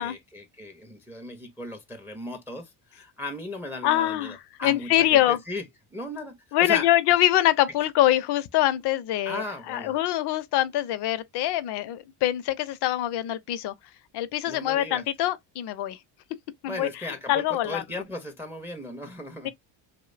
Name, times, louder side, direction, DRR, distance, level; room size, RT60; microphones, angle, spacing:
voice 1, 0.0-5.6 5.9-6.9 9.2-9.9 14.5-15.0 16.7-19.5, left 1 dB, 5° right, 0.4 m, -36 dB
voice 2, 3.8-5.4 6.5-13.7 14.1-16.0 16.6-17.8 19.4-19.5, left 14 dB, 55° left, 0.5 m, -24 dB
2.6 x 2.1 x 2.3 m
supercardioid pair, 100°, 48 cm